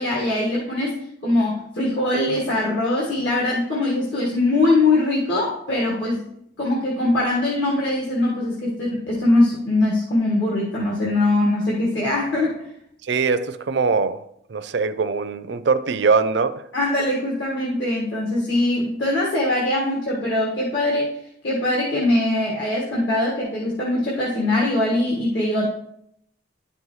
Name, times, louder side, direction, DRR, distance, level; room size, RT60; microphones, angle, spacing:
voice 1, 0.0-6.2 6.6-12.6 16.7-21.1 21.4-25.7, left 2 dB, 70° left, 1.7 m, -22 dB
voice 2, 13.0-14.2 14.5-16.6, right 4 dB, 60° right, 0.5 m, -22 dB
11.0 x 5.4 x 3.2 m
head